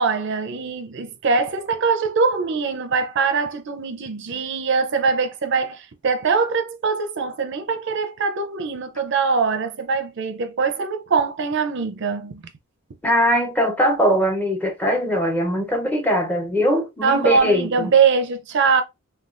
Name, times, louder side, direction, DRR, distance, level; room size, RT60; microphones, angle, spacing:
voice 1, 0.0-12.4 17.0-18.8, right 5 dB, 55° right, 0.5 m, -22 dB
voice 2, 13.0-17.9, equal, 10° left, 0.6 m, -21 dB
3.4 x 2.3 x 2.4 m
head